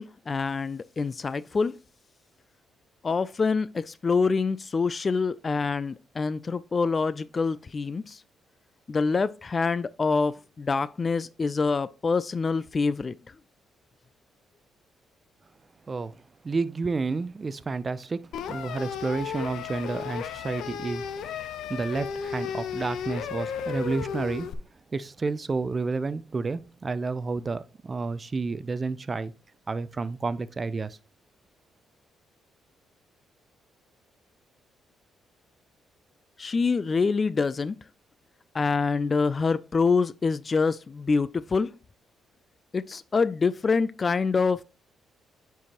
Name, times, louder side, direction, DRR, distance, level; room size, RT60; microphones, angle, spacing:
voice 1, 0.0-1.7 3.0-8.2 8.9-13.2 36.4-37.8 38.5-41.7 42.7-44.6, left 4 dB, 35° left, 0.3 m, -26 dB
voice 2, 15.9-24.5 24.9-29.3 29.7-31.0, right 4 dB, 30° right, 0.5 m, -31 dB
sound 1, 18.3-24.5, left 7 dB, 75° left, 0.7 m, -34 dB
9.3 x 4.6 x 2.9 m
cardioid pair, 90°, 0 cm